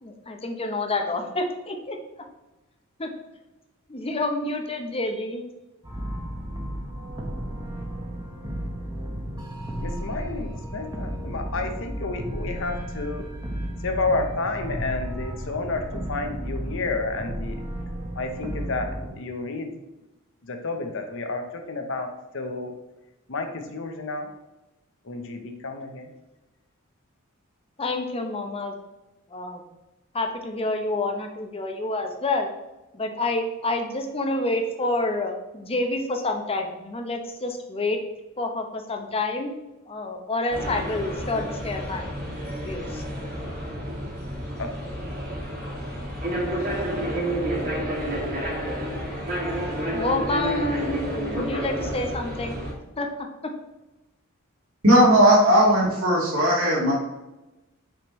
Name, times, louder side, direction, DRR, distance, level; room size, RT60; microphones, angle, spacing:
voice 1, 0.0-2.0 3.0-3.1 3.9-5.4 27.8-28.7 29.3-29.6 30.1-32.5 32.9-38.0 38.4-39.5 39.9-42.1 42.6-43.0 49.9-52.6 53.0-53.1, left 2 dB, 25° left, 4 dB, 0.8 m, -28 dB
sound 1, 5.8-19.1, equal, 20° right, 1.0 m, -33 dB
voice 2, 9.8-13.3 13.8-17.6 18.2-19.7 20.5-22.7 23.3-24.3 25.1-26.1 44.6-44.7, left 3 dB, 65° left, 5 dB, 0.8 m, -30 dB
sound 2, 40.5-52.7, equal, 45° right, 2.1 m, -30 dB
voice 3, 54.8-56.9, equal, 75° right, -5 dB, 1.9 m, -17 dB
6.0 x 5.1 x 3.1 m, 1.0 s
head